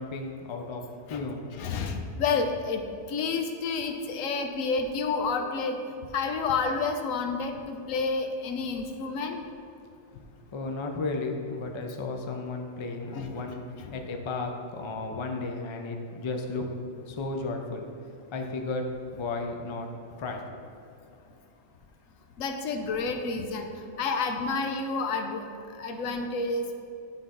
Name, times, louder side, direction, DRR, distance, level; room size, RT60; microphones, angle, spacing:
voice 1, 0.0-1.5 10.5-13.6 13.9-16.7 17.1-17.9 18.3-19.9 20.2-20.4, left 3 dB, 40° left, 3 dB, 0.4 m, -34 dB
voice 2, 1.5-2.8 3.1-5.8 6.1-9.4 13.1-13.4 13.8-14.0 22.4-23.7 24.0-25.4 25.8-26.8, left 4 dB, 90° left, 5 dB, 1.1 m, -29 dB
10.5 x 3.8 x 3.8 m, 2.4 s
omnidirectional pair, 1.3 m